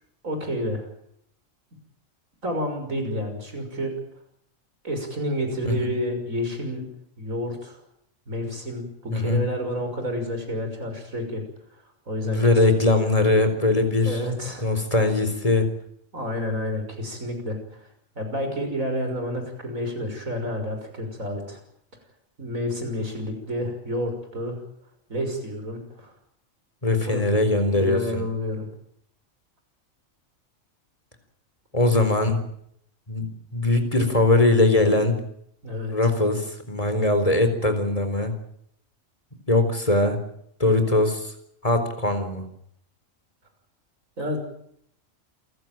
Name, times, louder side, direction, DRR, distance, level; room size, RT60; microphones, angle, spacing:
voice 1, 0.2-0.9 2.4-3.9 4.8-6.9 7.2-7.8 8.3-11.4 12.1-12.6 13.0-13.1 14.0-14.7 16.1-17.8 18.2-21.6 22.4-24.6 25.1-26.1 27.0-27.2 27.7-28.7 35.6-36.1 44.2-44.4, equal, 85° right, 5 dB, 6.4 m, -29 dB
voice 2, 12.2-14.2 14.6-15.7 26.8-28.2 31.7-32.4 33.1-33.3 33.5-35.2 35.9-38.3 39.5-40.2 40.6-41.3 41.6-42.5, left 2 dB, 25° left, 8 dB, 4.3 m, -21 dB
28.0 x 15.5 x 9.1 m, 0.71 s
omnidirectional pair, 1.4 m